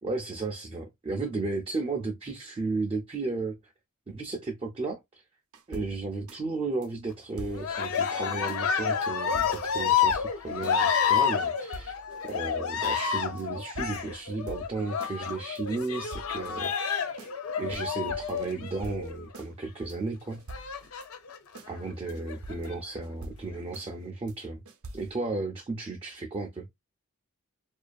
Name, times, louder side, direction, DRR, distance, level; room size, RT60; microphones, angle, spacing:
voice 1, 0.0-3.7 4.1-5.2 5.7-11.9 12.2-17.1 17.6-20.4 21.7-24.6 24.9-26.7, right 3 dB, 25° right, 0.3 m, -34 dB
sound 1, 5.5-6.4 6.8-6.9 7.4-8.1 8.5-8.6 9.0-10.8 11.2-11.3 11.5-12.4 12.8-13.0 13.4-13.5 13.7-15.2 15.6-15.7 15.9-16.7 17.2-17.3 17.7-17.8 18.1-19.5 19.9-20.0 20.3-21.1 21.5-21.7 22.1-22.2 22.4-23.9 24.3-24.4 24.7-25.1, right 2 dB, 80° right, 0.5 m, -46 dB
Cheering, 7.5-19.2 20.5-21.4 22.1-22.7, left 7 dB, 70° left, 0.5 m, -29 dB
2.4 x 2.3 x 2.3 m
head